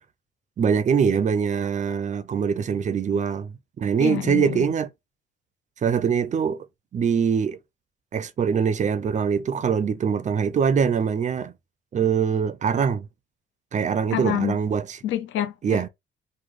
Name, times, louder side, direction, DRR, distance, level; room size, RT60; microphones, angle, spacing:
voice 1, 0.6-4.9 5.8-6.7 6.9-7.6 8.1-11.5 11.9-13.1 13.7-15.0 15.6-15.9, right 7 dB, 40° right, 0.4 m, -23 dB
voice 2, 4.0-4.7 14.1-14.6 15.0-15.9, left 12 dB, 80° left, 0.5 m, -27 dB
3.1 x 2.1 x 3.5 m
cardioid pair, 90°, 20 cm